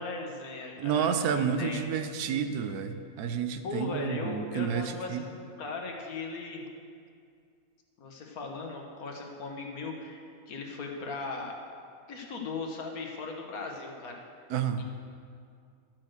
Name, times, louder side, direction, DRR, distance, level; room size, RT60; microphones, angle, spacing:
voice 1, 0.0-1.8 3.6-6.6 8.0-11.6 12.1-14.2 14.8-14.9, left 3 dB, 70° left, 1 dB, 1.7 m, -38 dB
voice 2, 0.8-5.2 14.5-14.8, right 7 dB, 80° right, 8 dB, 1.2 m, -30 dB
12.0 x 6.1 x 6.5 m, 2.3 s
omnidirectional pair, 1.6 m